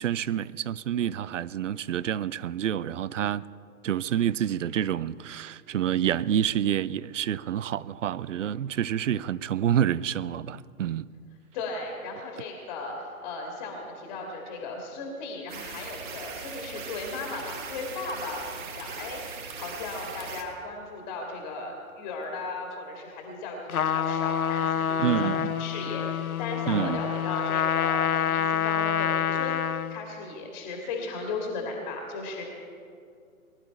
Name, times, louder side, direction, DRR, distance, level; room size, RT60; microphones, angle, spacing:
voice 1, 0.0-3.4 3.8-11.1 25.0-25.5 26.7-27.0, right 10 dB, 60° right, 0.5 m, -28 dB
voice 2, 11.5-32.4, left 3 dB, 30° left, 2.0 m, -36 dB
sound 1, 15.5-20.4, right 5 dB, 35° right, 1.3 m, -40 dB
Trumpet, 23.7-30.0, left 8 dB, 75° left, 0.6 m, -27 dB
20.5 x 11.5 x 4.5 m
figure-of-eight pair, 130°, 43 cm